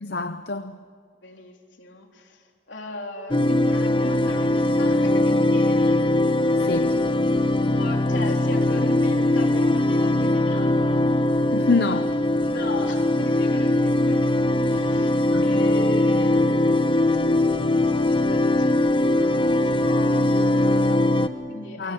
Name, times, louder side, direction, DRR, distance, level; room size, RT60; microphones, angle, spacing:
voice 1, 0.0-0.7 6.6-6.9 11.5-12.2 15.3-15.5 21.8-21.9, left 3 dB, 55° left, 0.7 m, -25 dB
voice 2, 1.2-6.1 7.6-11.1 12.4-17.5 18.1-21.9, left 1 dB, 75° left, 3.9 m, -38 dB
sound 1, 3.3-21.3, left 1 dB, 25° left, 1.0 m, -21 dB
28.0 x 24.0 x 8.7 m
head